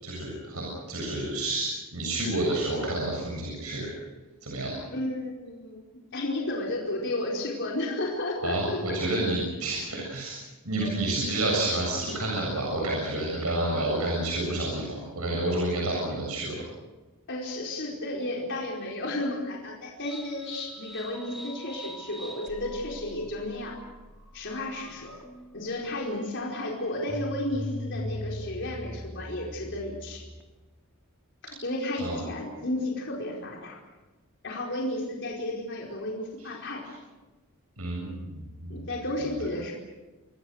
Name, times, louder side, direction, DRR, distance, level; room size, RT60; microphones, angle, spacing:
voice 1, 0.0-3.9 4.4-4.8 8.4-10.4 10.6-16.6 32.0-32.2 37.8-38.8, right 2 dB, 85° right, -2 dB, 7.5 m, -29 dB
voice 2, 4.9-8.8 10.8-10.9 17.3-23.7 24.3-25.1 25.5-30.2 31.4-33.8 34.4-36.8 38.7-39.7, left 1 dB, 55° left, -2 dB, 4.8 m, -33 dB
sound 1, 20.0-30.6, left 1 dB, ahead, 3.1 m, -41 dB
28.0 x 22.0 x 6.5 m, 1.2 s
head